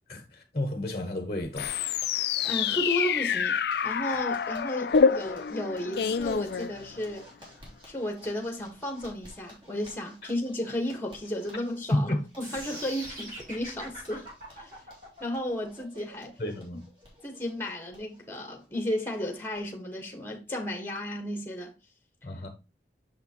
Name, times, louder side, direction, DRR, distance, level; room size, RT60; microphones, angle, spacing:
voice 1, 0.1-1.7 11.9-12.2 16.4-16.8 22.2-22.5, left 1 dB, 35° left, 1.0 m, -30 dB
Zipper (clothing), 1.4-19.6 19.9-20.0 20.3-20.4 20.7-21.2, equal, 25° right, 3.2 m, -54 dB
sound 1, 1.6-7.2, left 6 dB, 65° left, 0.4 m, -27 dB
voice 2, 2.2-3.6 3.8-7.2 7.8-12.1 12.4-14.3 14.6-14.7 15.2-16.4 17.2-21.7, left 1 dB, 10° left, 1.4 m, -33 dB
sound 2, 12.4-18.4, equal, 45° right, 3.6 m, -43 dB
6.6 x 6.1 x 3.0 m
head